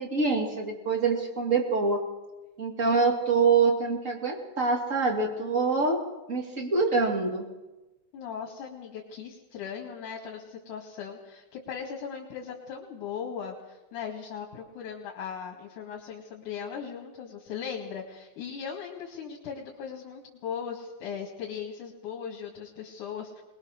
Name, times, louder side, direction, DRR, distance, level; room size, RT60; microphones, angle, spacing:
voice 1, 0.0-2.0 2.6-6.0 6.3-7.5, right 4 dB, 25° right, 1 dB, 2.8 m, -25 dB
voice 2, 8.1-23.4, left 7 dB, 80° left, -1 dB, 3.6 m, -38 dB
22.5 x 20.5 x 6.5 m, 1.1 s
omnidirectional pair, 3.5 m